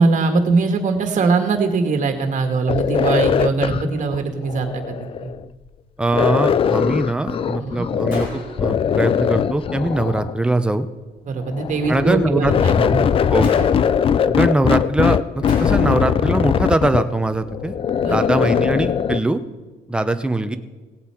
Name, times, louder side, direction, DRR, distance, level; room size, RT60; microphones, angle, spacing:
voice 1, 0.0-5.0 5.2-5.3 7.6-7.9 11.3-13.1 18.0-18.2, right 4 dB, 45° right, 6 dB, 1.7 m, -21 dB
sound 1, 2.7-5.4 6.1-8.3 8.6-10.4 11.4-19.2, left 8 dB, 35° left, 0.4 m, -20 dB
voice 2, 6.0-10.9 11.9-13.0 13.3-13.7 14.3-17.7 18.1-19.4 19.9-20.6, right 2 dB, 5° right, 8 dB, 0.7 m, -21 dB
Gunshot gunfire, 8.1-8.8 13.4-14.1 15.5-16.2, left 3 dB, 55° left, 3.5 m, -33 dB
17.5 x 8.2 x 4.5 m, 1.3 s
cardioid pair, 110°, 17 cm